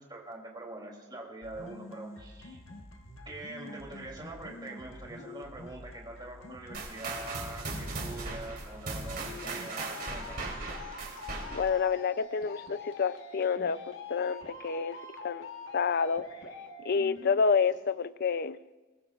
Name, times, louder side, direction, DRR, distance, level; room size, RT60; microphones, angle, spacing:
voice 1, 0.0-2.6 3.2-10.5, right 2 dB, 25° right, -1 dB, 3.0 m, -44 dB
sound 1, 1.4-17.4, left 3 dB, 90° left, 1.4 m, -46 dB
sound 2, 6.7-11.8, right 3 dB, 55° right, 3.2 m, -38 dB
voice 2, 11.5-15.0 15.2-15.5 15.7-16.2 16.8-18.6, left 5 dB, 55° left, 15 dB, 0.5 m, -28 dB
22.5 x 21.0 x 2.5 m, 1.2 s
head